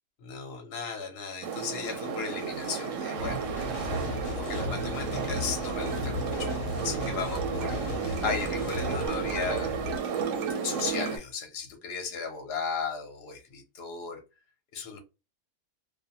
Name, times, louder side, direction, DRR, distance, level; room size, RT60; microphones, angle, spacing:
voice 1, 0.2-3.5 3.8-9.7 10.6-14.2 14.7-15.0, left 5 dB, 50° left, 0.9 m, -36 dB
sound 1, 1.4-11.2, right 6 dB, 65° right, 0.8 m, -33 dB
sound 2, 3.2-10.0, left 3 dB, 75° left, 1.0 m, -38 dB
sound 3, 3.6-9.1, left 2 dB, 90° left, 1.1 m, -39 dB
2.5 x 2.2 x 2.8 m
omnidirectional pair, 1.6 m